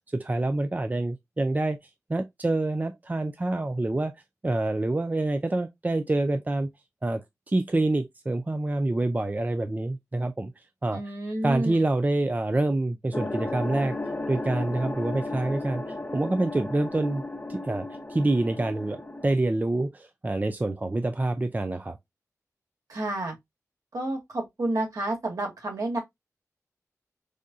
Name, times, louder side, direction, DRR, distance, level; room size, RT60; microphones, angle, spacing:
voice 1, 0.1-1.8 2.1-4.1 4.4-6.7 7.0-7.2 7.5-10.5 10.8-11.0 11.4-14.0 14.3-15.8 16.1-17.2 17.5-22.0, right 2 dB, 25° right, 0.4 m, -26 dB
voice 2, 10.9-11.9 22.9-23.3 23.9-26.0, right 1 dB, 70° right, 1.9 m, -30 dB
sound 1, 13.1-19.4, left 2 dB, 30° left, 0.9 m, -34 dB
4.8 x 2.3 x 2.6 m
cardioid pair, 45°, 6 cm